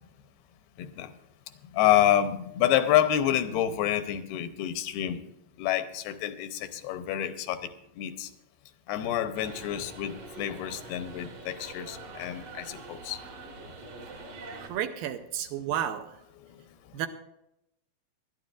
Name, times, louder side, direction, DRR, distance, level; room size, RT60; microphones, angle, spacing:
voice 1, 0.8-1.1 1.7-5.2 5.6-7.7 8.0-8.3 8.9-13.2 16.5-16.6, left 11 dB, 85° left, 10 dB, 2.8 m, -28 dB
sound 1, 9.3-14.7, right 3 dB, 50° right, 2.4 m, -44 dB
voice 2, 14.6-16.1 16.9-17.1, right 10 dB, 80° right, 8 dB, 2.3 m, -31 dB
21.0 x 12.0 x 2.5 m, 0.82 s
omnidirectional pair, 4.4 m